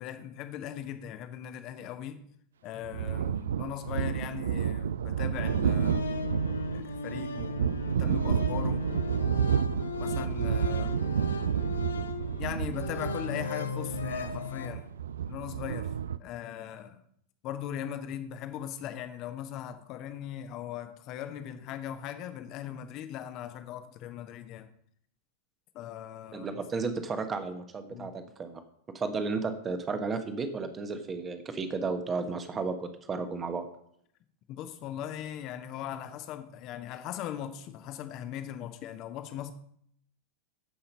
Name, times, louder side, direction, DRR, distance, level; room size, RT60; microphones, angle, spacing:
voice 1, 0.0-2.2 2.6-6.0 6.7-7.7 8.0-8.8 10.0-11.0 12.4-14.9 15.3-15.9 16.2-17.0 17.4-24.7 25.7-26.6 27.9-28.1 34.5-39.5, left 10 dB, 40° left, 9 dB, 1.1 m, -39 dB
sound 1, 2.8-16.2, right 8 dB, 65° right, 0.4 m, -30 dB
sound 2, 5.4-14.7, left 3 dB, 70° left, 0.9 m, -36 dB
voice 2, 26.3-28.6 28.9-33.6, right 4 dB, 20° right, 9 dB, 1.3 m, -33 dB
14.5 x 5.8 x 5.2 m, 0.68 s
figure-of-eight pair, 90°, 0 cm